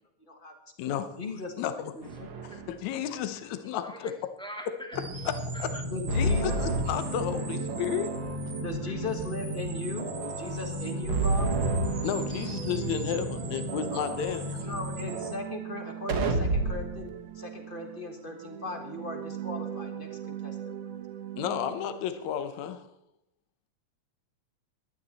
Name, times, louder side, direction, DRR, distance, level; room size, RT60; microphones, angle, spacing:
voice 1, 0.2-0.5 1.2-1.5 2.0-2.3 5.8-6.6 8.6-11.5 13.9-14.4 14.7-21.0, left 3 dB, 40° left, 4 dB, 0.7 m, -38 dB
voice 2, 0.8-1.1 1.6-1.9 2.4-4.1 4.9-5.9 6.1-8.1 12.0-14.7 21.4-22.8, left 9 dB, 75° left, 10 dB, 2.3 m, -32 dB
sound 1, 2.0-2.7 6.1-7.8 11.1-12.7 16.1-17.0, right 1 dB, 50° right, 2.1 m, -29 dB
voice 3, 4.4-5.0 5.5-5.7 8.8-8.9, equal, 5° left, 2 dB, 0.9 m, -43 dB
sound 2, 4.9-15.3, right 1 dB, 35° right, 2.1 m, -36 dB
sound 3, 6.6-22.3, right 10 dB, 70° right, 1.8 m, -40 dB
17.0 x 12.0 x 4.2 m, 0.79 s
omnidirectional pair, 3.3 m